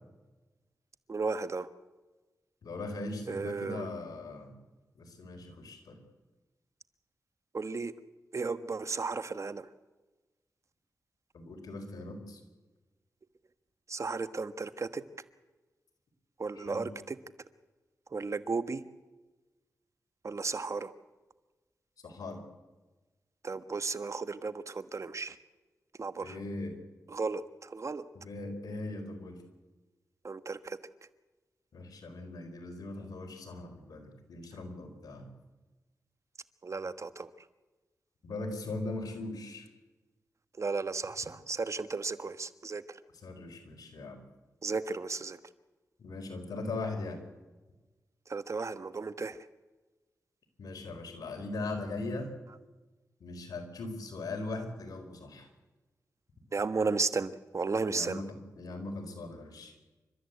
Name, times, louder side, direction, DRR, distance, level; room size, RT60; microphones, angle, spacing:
voice 1, 1.1-1.7 3.3-3.9 7.5-7.9 8.3-9.6 13.9-15.0 16.4-17.1 18.1-18.8 20.2-20.9 23.4-25.3 26.0-26.3 27.1-28.0 30.2-30.8 36.6-37.3 40.6-42.8 44.6-45.4 48.3-49.4 56.5-58.2, right 4 dB, 50° right, 12 dB, 1.3 m, -34 dB
voice 2, 2.6-4.5 5.0-6.0 11.3-12.4 16.5-16.9 22.0-22.4 26.2-26.8 28.1-29.4 31.7-35.3 38.2-39.7 43.1-44.2 46.0-47.2 50.6-52.3 53.2-55.5 57.9-59.7, left 2 dB, 85° left, 5 dB, 4.4 m, -39 dB
29.0 x 13.5 x 8.2 m, 1.2 s
cardioid pair, 55°, 6 cm